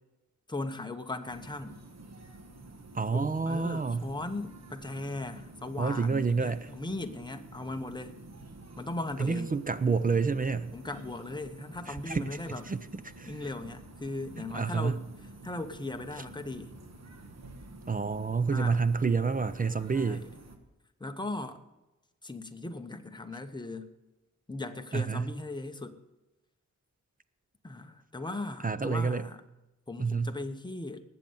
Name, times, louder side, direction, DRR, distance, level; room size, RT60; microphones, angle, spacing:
voice 1, 0.5-1.8 3.1-8.1 8.8-9.5 10.7-12.6 13.3-15.1 15.4-16.7 18.5-18.8 19.9-20.3 21.0-21.6 22.2-23.9 24.5-26.0 27.6-29.4 29.9-31.0, left 2 dB, 15° left, 6 dB, 0.9 m, -38 dB
sound 1, 1.3-20.6, right 2 dB, 60° right, 1.4 m, -49 dB
voice 2, 2.9-4.1 5.8-6.7 9.2-10.7 11.9-12.4 12.7-13.5 14.5-15.0 17.9-20.3 24.9-25.3 28.6-29.3 30.0-30.4, right 4 dB, 30° right, 13 dB, 0.5 m, -29 dB
19.5 x 7.7 x 5.4 m, 1.0 s
wide cardioid pair, 145°, 30 cm